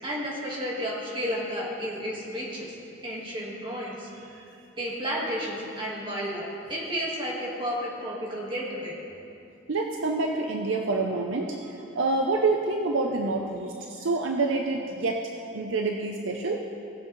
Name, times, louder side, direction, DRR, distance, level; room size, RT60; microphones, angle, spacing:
voice 1, 0.0-2.7 3.0-4.1 4.8-9.0, equal, 25° right, -4 dB, 1.6 m, -32 dB
voice 2, 9.7-16.6, right 3 dB, 75° right, 2 dB, 0.6 m, -27 dB
17.5 x 7.3 x 3.1 m, 2.7 s
head